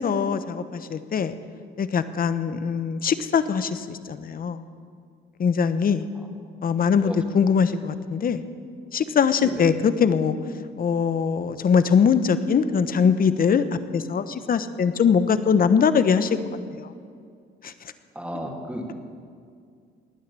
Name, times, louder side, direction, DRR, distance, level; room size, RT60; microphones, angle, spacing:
voice 1, 0.0-1.3 1.8-4.6 5.4-6.0 6.6-8.4 8.9-10.4 10.8-16.4 16.8-16.9 17.6-17.7, left 6 dB, 45° left, 12 dB, 0.9 m, -22 dB
voice 2, 18.1-19.0, equal, 5° right, 1 dB, 2.7 m, -33 dB
18.5 x 9.6 x 7.5 m, 2.2 s
cardioid pair, 90°, 20 cm